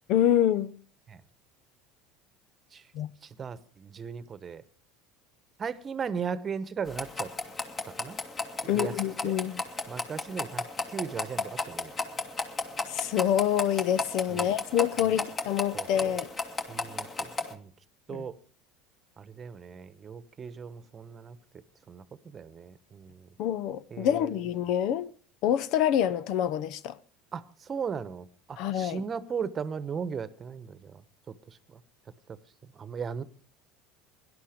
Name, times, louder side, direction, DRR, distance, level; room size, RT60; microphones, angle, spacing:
voice 1, 0.1-0.7 2.9-3.1 8.7-9.6 12.9-16.3 18.1-18.2 23.4-25.1 25.4-27.0 28.6-29.0, left 10 dB, 60° left, 0.7 m, -26 dB
voice 2, 3.2-4.6 5.6-7.3 7.9-8.2 8.6-9.3 9.9-11.9 14.3-14.5 15.0-15.2 15.7-16.2 16.7-17.7 18.1-18.4 19.2-21.4 21.9-23.3 23.9-24.4 27.3-31.0 31.3-31.8 32.3-33.2, right 6 dB, 30° right, 1.1 m, -37 dB
sound 1, 6.9-17.5, left 3 dB, 30° left, 2.2 m, -35 dB
17.5 x 11.5 x 5.0 m
supercardioid pair, 90°, 0 cm